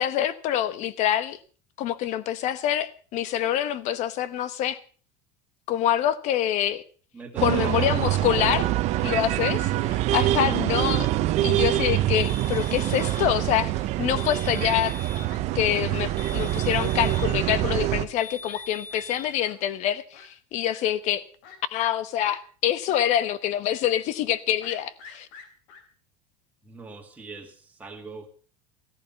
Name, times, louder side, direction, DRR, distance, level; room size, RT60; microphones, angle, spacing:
voice 1, 0.0-1.4 1.8-4.8 5.7-6.8 7.4-8.7 9.0-11.1 11.4-13.7 14.0-14.9 15.5-21.2 21.7-25.3, left 11 dB, 45° left, 1.1 m, -26 dB
voice 2, 7.1-8.2 26.6-28.3, right 3 dB, 10° right, 2.5 m, -41 dB
sound 1, 7.4-18.1, right 15 dB, 45° right, 1.0 m, -25 dB
Fowl, 11.9-12.1 12.6-12.7 13.5-14.0 14.4-14.6 14.9-15.0 15.2-15.4 15.8-16.0 16.7-16.8 17.7-17.8 18.1-18.2 18.5-18.6 18.9-19.0 19.4-19.6 20.1-20.3 20.7-20.8 21.4-22.0 22.2-22.4 22.9-23.0 23.3-23.4 24.6-25.8, left 6 dB, 70° left, 3.8 m, -48 dB
sound 2, 12.2-13.3 14.2-15.3 16.2-17.3 18.2-19.3, left 3 dB, 5° left, 3.6 m, -42 dB
14.5 x 14.5 x 5.7 m
cardioid pair, 165°, 16 cm